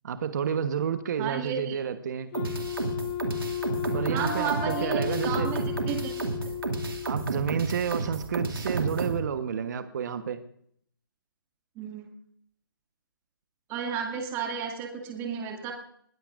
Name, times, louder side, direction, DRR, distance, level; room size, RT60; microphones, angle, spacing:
voice 1, 0.0-2.3 3.9-5.5 7.0-10.4, right 7 dB, 55° right, 9 dB, 1.1 m, -30 dB
voice 2, 1.2-1.8 4.1-6.1 11.8-12.1 13.7-15.7, right 7 dB, 20° right, 1 dB, 2.2 m, -32 dB
Wind instrument woodwind instrument, 2.3-7.3, left 10 dB, 40° left, 5.1 m, -34 dB
sound 1, 2.3-9.2, right 3 dB, 80° right, 2.4 m, -31 dB
21.5 x 17.5 x 2.5 m, 0.65 s
hypercardioid pair, 145°, 12 cm